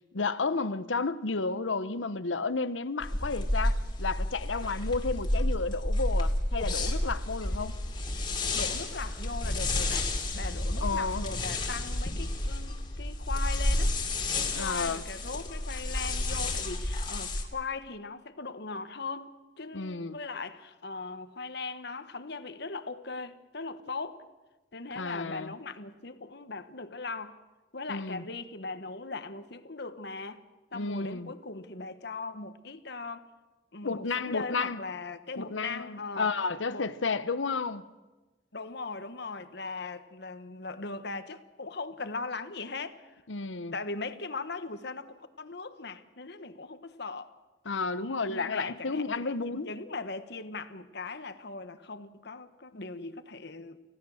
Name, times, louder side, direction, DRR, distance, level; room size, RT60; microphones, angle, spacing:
voice 1, 0.1-7.8 10.8-11.3 14.5-15.0 19.7-20.2 24.9-25.5 27.9-28.2 30.7-31.3 33.8-34.8 35.4-37.8 43.3-43.7 47.6-49.7, left 4 dB, 85° left, 1.0 m, -32 dB
sound 1, 3.0-17.4, left 1 dB, 25° left, 2.8 m, -31 dB
voice 2, 8.5-13.9 14.3-24.2 24.7-27.4 27.7-30.4 30.7-33.3 33.7-36.3 36.7-36.9 38.5-43.2 43.7-47.3 48.3-53.8, left 3 dB, 60° left, 1.4 m, -39 dB
29.5 x 16.0 x 6.5 m
head